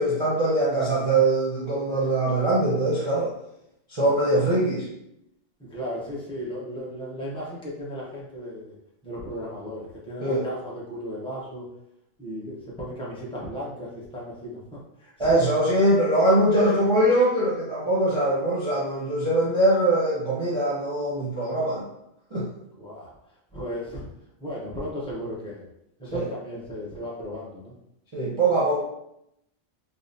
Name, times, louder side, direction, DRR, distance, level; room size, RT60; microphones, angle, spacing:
voice 1, 0.0-3.3 3.9-4.8 10.2-10.5 15.2-21.8 22.3-22.5 26.1-26.3 28.1-28.7, right 1 dB, 25° right, -8 dB, 0.8 m, -22 dB
voice 2, 5.7-8.8 9.0-11.7 12.2-14.6 15.0-15.4 22.8-23.1 23.5-24.1 24.4-25.6 26.1-27.7, equal, 5° left, -6 dB, 0.8 m, -35 dB
5.0 x 2.1 x 2.7 m, 0.80 s
omnidirectional pair, 1.3 m